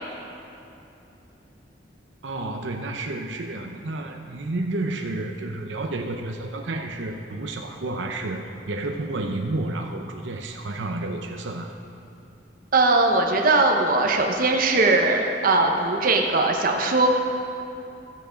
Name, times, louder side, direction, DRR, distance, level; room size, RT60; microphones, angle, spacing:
voice 1, 2.2-11.7, right 2 dB, 85° right, 3 dB, 0.7 m, -30 dB
voice 2, 12.7-17.1, right 3 dB, 50° right, 2 dB, 0.9 m, -20 dB
15.0 x 7.0 x 5.1 m, 2.8 s
head